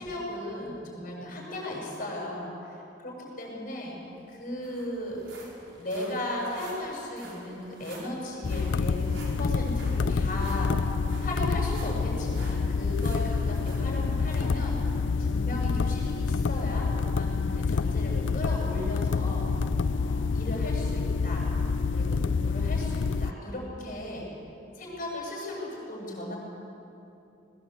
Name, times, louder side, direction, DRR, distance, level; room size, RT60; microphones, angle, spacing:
voice 1, 0.0-4.0 4.3-5.2 5.8-9.1 9.3-10.9 11.2-14.8 15.2-19.4 19.9-21.4 21.9-24.3 24.7-26.4, left 1 dB, 45° left, -2 dB, 7.7 m, -36 dB
sound 1, 3.8-3.9 4.2-15.0 15.5-15.7 16.2-16.3, right 2 dB, 85° right, 5.7 m, -50 dB
sound 2, 8.4-23.3, left 4 dB, 75° left, 0.5 m, -27 dB
21.5 x 19.5 x 8.5 m, 2.8 s
head